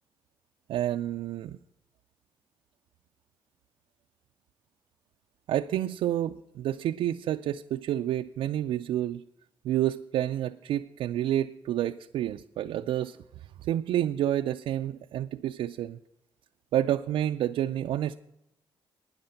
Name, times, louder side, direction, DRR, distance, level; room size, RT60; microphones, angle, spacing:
voice 1, 0.7-1.6 5.5-9.2 9.6-13.2 13.6-16.0 16.7-18.2, right 12 dB, 85° right, 5 dB, 0.4 m, -29 dB
11.5 x 9.5 x 5.6 m, 0.85 s
cardioid pair, 100°, 9 cm